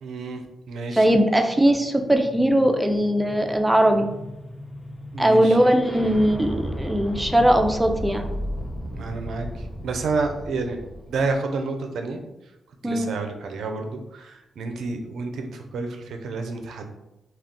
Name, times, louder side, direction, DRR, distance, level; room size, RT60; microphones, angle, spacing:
voice 1, 0.0-1.2 5.1-5.7 8.9-10.8 11.1-12.2 12.8-16.9, right 3 dB, 75° right, 4 dB, 0.4 m, -30 dB
voice 2, 1.0-4.1 5.2-8.3 12.8-13.1, right 1 dB, 10° right, 5 dB, 0.4 m, -20 dB
sound 1, 1.5-11.3, equal, 20° left, 0.8 m, -35 dB
2.3 x 2.3 x 3.5 m, 0.94 s
supercardioid pair, 55°, 0 cm